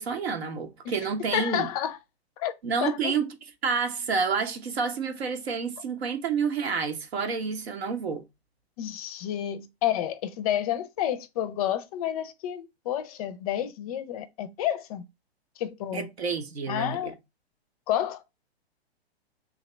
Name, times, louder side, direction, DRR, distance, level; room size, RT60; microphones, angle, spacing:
voice 1, 0.0-1.7 2.6-8.2 15.9-17.1, right 5 dB, 70° right, 1.0 m, -29 dB
voice 2, 1.3-2.0 2.4-2.5 2.8-3.1 8.8-15.0 15.6-16.1 16.7-17.1 17.9-18.2, left 11 dB, 35° left, 0.5 m, -30 dB
2.9 x 2.8 x 4.2 m
hypercardioid pair, 125°, 32 cm